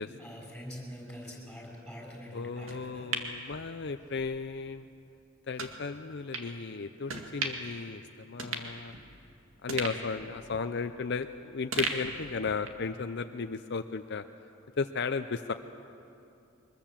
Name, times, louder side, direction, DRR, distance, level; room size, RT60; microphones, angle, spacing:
voice 1, 0.0-3.1, equal, 5° left, -1 dB, 5.9 m, -44 dB
voice 2, 2.3-4.9 5.5-8.9 9.6-14.2 14.8-15.5, left 4 dB, 55° left, 8 dB, 0.6 m, -35 dB
sound 1, 2.7-4.3 4.7-4.8 5.6-5.8 6.3-6.5 7.1-7.8 8.1-8.2 8.4-9.3 9.7-11.3 11.7-12.9 13.2-13.3, right 4 dB, 85° right, 2.1 m, -37 dB
23.5 x 21.5 x 7.5 m, 2.6 s
head